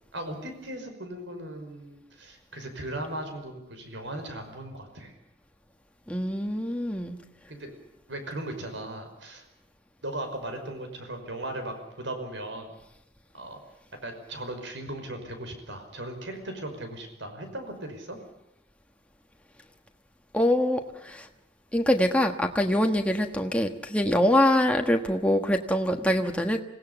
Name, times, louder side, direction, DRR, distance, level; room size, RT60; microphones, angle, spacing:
voice 1, 0.1-5.1 7.5-7.7 8.1-9.4 10.0-12.8 13.3-13.6 14.0-18.2, right 1 dB, 75° right, 6 dB, 5.5 m, -37 dB
voice 2, 6.1-7.2 20.3-21.3 21.7-26.6, left 1 dB, 5° left, 3 dB, 1.4 m, -24 dB
26.5 x 17.5 x 7.1 m, 0.92 s
head